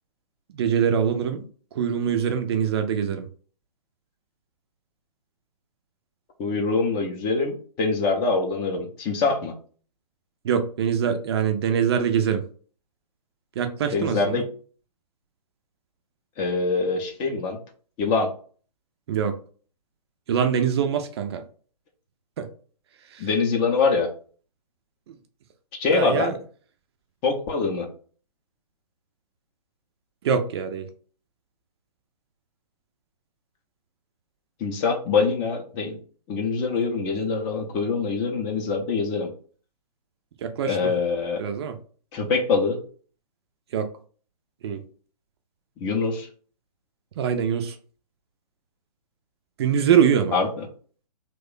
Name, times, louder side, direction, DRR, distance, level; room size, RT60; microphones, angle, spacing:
voice 1, 0.5-1.4 1.7-3.3 10.4-12.4 13.6-14.4 19.1-19.3 20.3-21.4 22.4-22.5 23.1-23.3 25.9-26.4 30.2-30.9 40.4-40.9 41.4-41.7 43.7-43.9 44.6-44.8 47.2-47.8 49.6-50.3, right 8 dB, 40° right, 0.5 m, -23 dB
voice 2, 6.4-9.5 13.9-14.5 16.4-17.6 18.0-18.3 23.2-24.1 25.8-26.4 27.2-27.9 34.6-36.0 36.3-39.3 40.6-41.4 42.1-42.8 45.8-46.3 50.3-50.7, left 4 dB, 20° left, 0.5 m, -24 dB
3.0 x 2.2 x 3.7 m
figure-of-eight pair, 130°, 21 cm